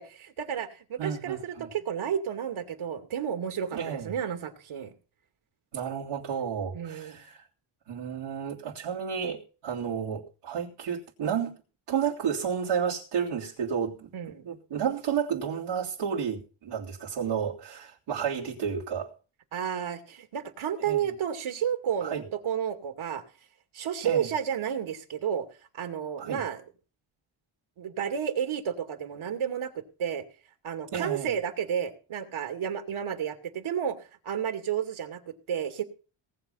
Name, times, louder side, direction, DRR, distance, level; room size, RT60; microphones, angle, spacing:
voice 1, 0.0-4.9 6.7-7.2 14.1-14.4 19.5-23.2 23.7-25.5 25.7-26.6 27.8-30.2 30.6-35.8, right 8 dB, 70° right, 2.6 m, -31 dB
voice 2, 1.0-1.7 3.7-4.1 5.7-7.4 7.9-11.5 11.9-14.1 14.4-19.1 20.8-21.0 22.0-22.2 24.0-24.3 26.2-26.4 30.9-31.3, right 7 dB, 90° right, 3.3 m, -31 dB
19.0 x 7.6 x 5.7 m
cardioid pair, 60°, 50 cm